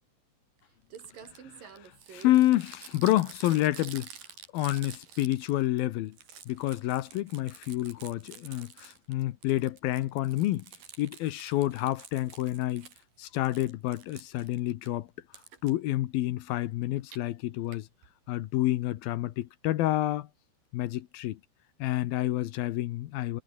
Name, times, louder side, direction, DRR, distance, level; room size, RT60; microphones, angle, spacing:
Crumpling crinkling, 0.6-0.7 0.9-5.8 6.1-9.1 9.4-13.0 13.4-14.9 15.3-15.7 16.8-17.2 17.7-17.8 18.0-18.1 18.3-18.4, right 8 dB, 60° right, 4.5 m, -49 dB
voice 1, 1.8-4.1 4.5-6.2 6.5-10.7 11.0-12.9 13.2-15.1 15.6-17.9 18.3-20.3 20.7-21.4 21.8-23.4, left 15 dB, 75° left, 2.6 m, -28 dB
omnidirectional pair, 4.7 m